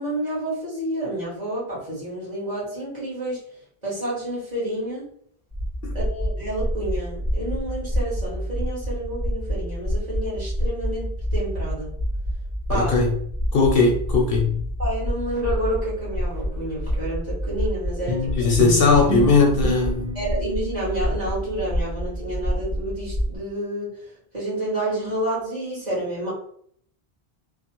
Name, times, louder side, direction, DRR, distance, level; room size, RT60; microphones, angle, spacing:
voice 1, 0.0-3.4 3.8-5.0 5.9-11.9 12.7-12.9 14.8-18.2 20.1-23.9 24.3-26.3, right 1 dB, 40° right, -8 dB, 1.6 m, -29 dB
sound 1, 5.5-23.4, equal, 20° right, 1.3 m, -28 dB
voice 2, 12.7-13.2 13.5-14.6 18.3-20.1, left 4 dB, 65° left, 1 dB, 0.7 m, -19 dB
sound 2, 18.1-22.7, left 1 dB, 70° right, 1.3 m, -32 dB
3.2 x 2.1 x 2.9 m, 0.63 s
omnidirectional pair, 1.1 m